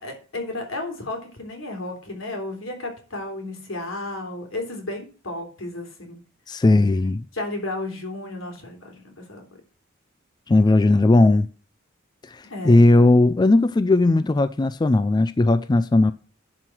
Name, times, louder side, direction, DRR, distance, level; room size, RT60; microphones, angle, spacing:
voice 1, 0.0-6.2 7.3-9.4 12.5-12.9, left 2 dB, 80° left, 3.4 m, -33 dB
voice 2, 6.5-7.2 10.5-11.5 12.3-16.1, left 2 dB, 20° left, 0.4 m, -17 dB
11.0 x 4.8 x 6.0 m
head